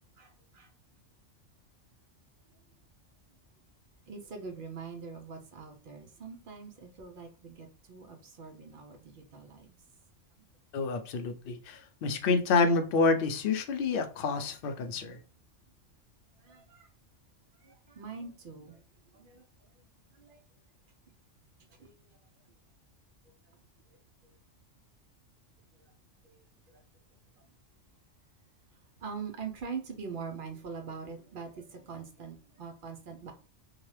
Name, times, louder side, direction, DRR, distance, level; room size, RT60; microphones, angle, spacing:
voice 1, 0.2-0.7 4.1-9.8 10.4-10.5 16.4-16.9 17.5-18.8 19.1-19.9 20.1-20.4 21.7-22.1 23.9-24.0 25.7-25.9 26.2-26.8 27.4-27.5 28.7-33.3, right 5 dB, 55° right, 0.6 m, -44 dB
voice 2, 10.7-15.2, left 4 dB, 60° left, 0.6 m, -28 dB
2.8 x 2.3 x 3.1 m
omnidirectional pair, 1.3 m